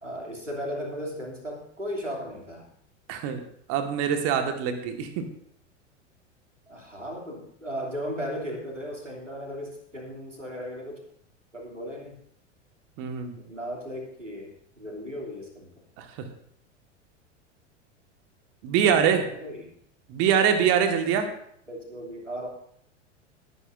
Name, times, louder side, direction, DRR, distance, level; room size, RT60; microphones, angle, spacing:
voice 1, 0.0-2.7 6.7-11.0 11.5-12.2 13.5-15.7 18.8-19.7 21.7-22.5, equal, 90° right, 0 dB, 3.1 m, -36 dB
voice 2, 3.1-3.4 3.7-5.2 13.0-13.4 16.0-16.3 18.6-19.3 20.1-21.3, right 8 dB, 40° right, 6 dB, 1.8 m, -24 dB
20.0 x 9.8 x 2.7 m, 0.67 s
figure-of-eight pair, 85°, 36 cm